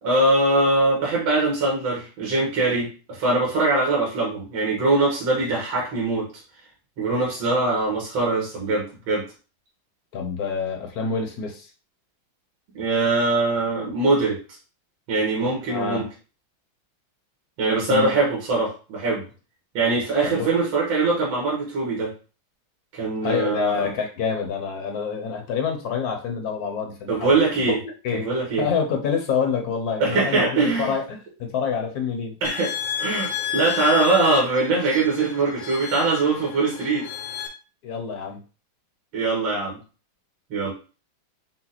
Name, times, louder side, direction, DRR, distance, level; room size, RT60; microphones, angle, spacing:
voice 1, 0.0-6.3 7.0-9.2 12.7-14.4 15.1-16.0 17.6-19.2 19.7-22.1 22.9-23.9 27.1-27.8 28.2-28.7 30.0-30.9 32.4-32.7 33.0-37.1 39.1-39.8 40.5-40.7, right 3 dB, 80° right, -3 dB, 2.3 m, -22 dB
voice 2, 10.1-11.7 15.7-16.0 17.9-18.1 20.2-20.5 23.2-27.7 28.0-28.3 28.6-32.3 37.8-38.4, left 6 dB, 60° left, 3 dB, 1.1 m, -27 dB
sound 1, 32.4-37.5, left 10 dB, 75° left, 1.5 m, -31 dB
5.9 x 2.2 x 4.0 m, 0.35 s
omnidirectional pair, 2.2 m